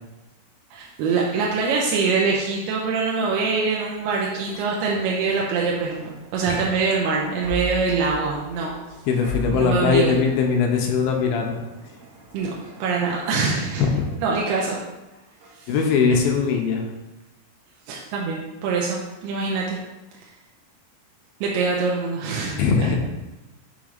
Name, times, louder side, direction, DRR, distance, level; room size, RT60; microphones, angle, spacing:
voice 1, 0.7-8.7 9.5-10.2 12.3-12.5 12.8-13.8 14.2-14.8 15.5-15.7 17.9-19.8 21.4-22.9, right 4 dB, 85° right, -2 dB, 2.7 m, -24 dB
sound 1, 3.9-15.0 15.4-15.6, left 1 dB, 70° right, 2.3 m, -40 dB
voice 2, 9.1-11.6 13.8-14.0 15.7-16.9 22.6-23.0, left 5 dB, 80° left, 2 dB, 2.3 m, -20 dB
7.0 x 3.2 x 5.1 m, 1.0 s
omnidirectional pair, 4.6 m